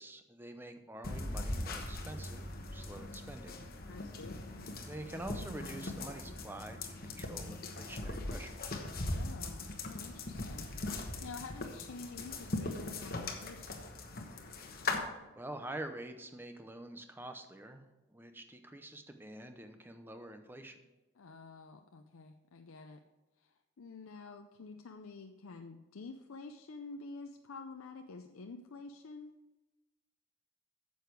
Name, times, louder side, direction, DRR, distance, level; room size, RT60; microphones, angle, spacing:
voice 1, 0.0-3.6 4.9-8.8 15.3-20.9, right 1 dB, 10° right, 7 dB, 0.6 m, -47 dB
sound 1, 1.0-15.0, left 2 dB, 45° left, 1.1 m, -40 dB
voice 2, 3.9-4.4 9.1-13.9 21.2-23.0 23.4-29.3, left 3 dB, 75° left, 5 dB, 0.5 m, -49 dB
9.3 x 7.0 x 4.6 m, 1.1 s
head